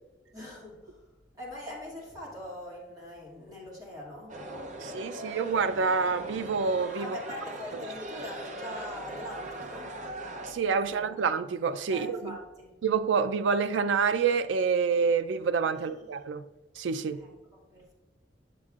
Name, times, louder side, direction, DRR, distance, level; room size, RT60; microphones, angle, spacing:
voice 1, 0.3-1.0 1.4-4.3 7.0-10.0 10.8-11.2 11.9-12.7 15.7-16.1 17.1-17.9, left 1 dB, 20° right, 2.2 m, -43 dB
sound 1, 4.3-10.5, right 1 dB, 40° right, 0.6 m, -40 dB
voice 2, 4.8-7.2 10.5-12.4 12.8-16.4 16.8-17.2, right 5 dB, 80° right, 0.4 m, -27 dB
7.7 x 7.3 x 2.4 m
head